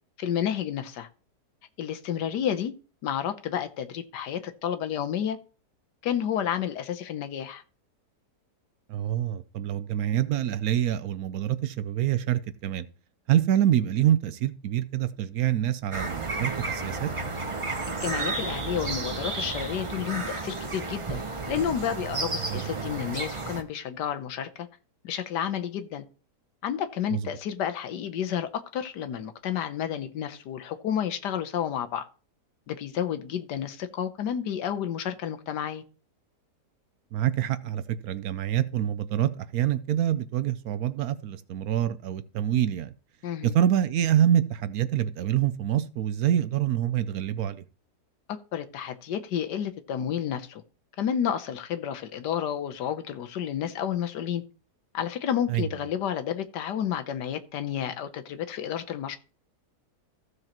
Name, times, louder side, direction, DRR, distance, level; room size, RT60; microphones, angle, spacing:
voice 1, 0.2-1.1 1.8-2.7 3.0-5.4 6.0-7.6 17.9-21.2 21.5-24.7 25.0-26.0 26.6-32.1 32.7-35.8 43.2-43.5 48.3-50.6 51.0-54.4 54.9-59.2, left 9 dB, 85° left, 1.5 m, -31 dB
voice 2, 8.9-12.8 13.3-17.1 22.5-22.6 27.1-27.2 37.1-42.9 43.4-47.6 55.5-55.6, right 11 dB, 70° right, 1.0 m, -26 dB
sound 1, 15.9-23.6, right 3 dB, 30° right, 0.6 m, -32 dB
15.0 x 6.4 x 3.0 m
omnidirectional pair, 1.8 m